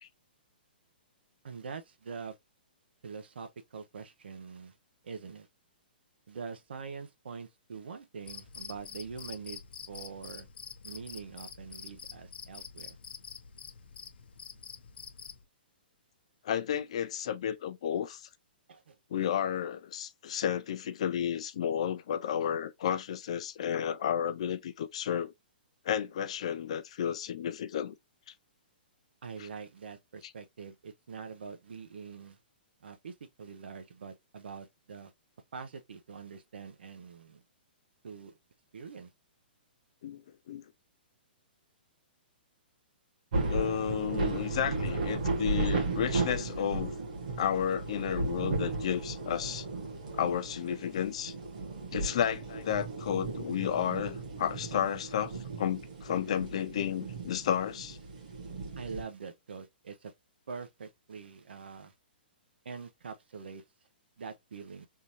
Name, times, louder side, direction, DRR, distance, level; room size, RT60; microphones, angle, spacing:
voice 1, 1.4-2.4 3.0-4.7 5.0-5.5 6.3-9.6 9.9-10.5 10.8-13.0 18.7-19.0 29.2-32.4 32.8-35.1 35.5-37.4 38.0-38.4 38.7-39.1 44.9-45.0 58.8-60.1 60.5-61.9 62.6-63.6 64.2-64.9, right 5 dB, 85° right, 0.8 m, -44 dB
Cricket, 8.2-15.4, left 7 dB, 75° left, 0.7 m, -47 dB
voice 2, 16.4-18.2 19.1-25.3 25.9-27.9 29.4-29.5 40.0-40.2 40.5-40.6 43.5-46.9 47.4-49.7 50.1-51.3 51.9-58.0, left 9 dB, 35° left, 0.4 m, -32 dB
sound 1, 43.3-59.0, right 3 dB, 45° right, 1.5 m, -35 dB
3.7 x 2.6 x 2.9 m
hypercardioid pair, 180°, 6 cm